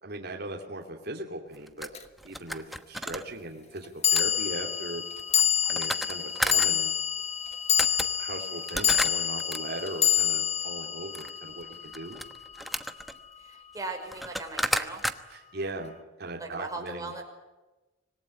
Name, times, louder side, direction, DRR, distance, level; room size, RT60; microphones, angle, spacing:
voice 1, 0.0-5.0 5.7-6.9 8.2-12.2 15.3-15.9 16.2-17.1, right 2 dB, 60° right, 1 dB, 2.9 m, -38 dB
sound 1, 1.5-3.2 4.1-4.3 5.2-6.7 7.5-7.6 7.8-8.1 8.6-9.6 11.1-11.3 11.7-13.1 13.8-13.9 14.1-15.1, equal, ahead, 1.0 m, -32 dB
sound 2, 1.9-2.0 4.0-12.5, left 9 dB, 35° left, 1.4 m, -27 dB
voice 2, 13.4-15.0 16.4-17.2, right 2 dB, 20° right, 3 dB, 5.5 m, -38 dB
26.0 x 19.5 x 9.8 m, 1.1 s
head